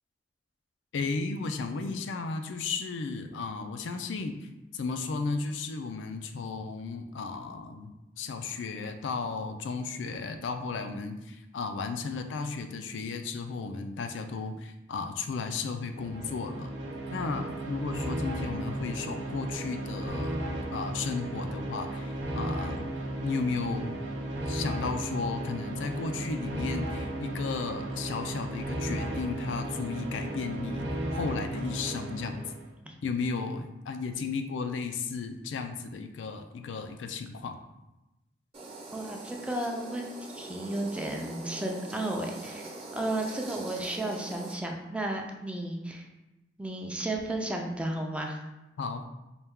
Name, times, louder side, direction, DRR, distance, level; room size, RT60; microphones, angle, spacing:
voice 1, 0.9-16.7 17.1-20.4 20.7-22.9 23.2-24.0 24.5-30.9 31.1-32.4 33.0-37.6 48.8-49.1, left 4 dB, 90° left, 6 dB, 0.4 m, -34 dB
sound 1, 15.9-32.7, right 1 dB, 75° right, 0.6 m, -35 dB
sound 2, 38.5-44.5, right 2 dB, 35° right, 0.8 m, -43 dB
voice 2, 38.9-46.1 46.6-48.4, right 1 dB, 5° right, 1 dB, 0.4 m, -33 dB
4.3 x 2.2 x 3.5 m, 0.98 s
head